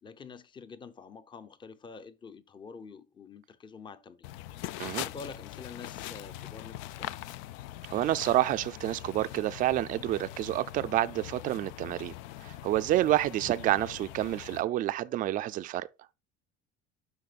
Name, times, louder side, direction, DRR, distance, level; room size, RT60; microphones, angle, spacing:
voice 1, 0.0-4.3 5.0-7.1, left 5 dB, 25° left, 0.7 m, -47 dB
sound 1, 4.2-14.6, left 14 dB, 85° left, 0.4 m, -42 dB
voice 2, 7.9-12.1 12.4-15.9, right 14 dB, 45° right, 0.4 m, -28 dB
10.5 x 6.1 x 2.4 m
cardioid pair, 140°, 20 cm